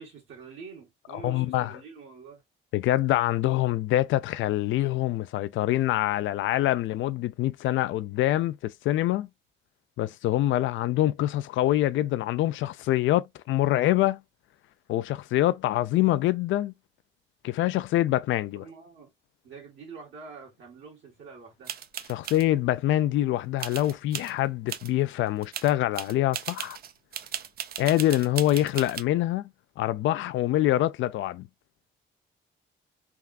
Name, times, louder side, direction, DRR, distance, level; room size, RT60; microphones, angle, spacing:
voice 1, 0.0-2.4 18.6-19.1 19.4-21.7, right 5 dB, 75° right, 1.5 m, -46 dB
voice 2, 1.1-1.8 2.7-9.3 10.0-14.2 14.9-16.7 17.4-18.6 22.1-26.8 27.8-29.5 29.8-31.5, left 14 dB, 75° left, 0.4 m, -25 dB
sound 1, 21.6-22.4 23.6-24.3 24.7-24.9 25.3-29.0, right 9 dB, 50° right, 0.4 m, -37 dB
3.4 x 2.4 x 2.4 m
cardioid pair, 90°, 20 cm